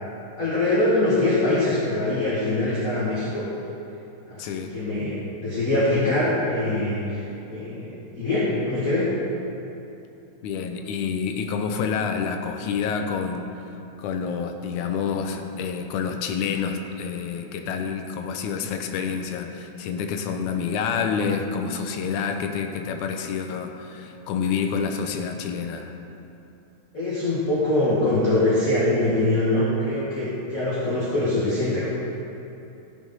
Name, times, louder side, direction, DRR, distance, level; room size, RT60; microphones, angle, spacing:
voice 1, 0.4-3.4 4.3-7.2 7.5-9.1 26.9-31.9, left 2 dB, 35° left, -9 dB, 1.8 m, -23 dB
voice 2, 4.4-4.7 10.4-13.5 14.0-25.9, left 6 dB, 80° left, 5 dB, 2.2 m, -28 dB
14.5 x 6.4 x 5.4 m, 2.8 s
omnidirectional pair, 3.5 m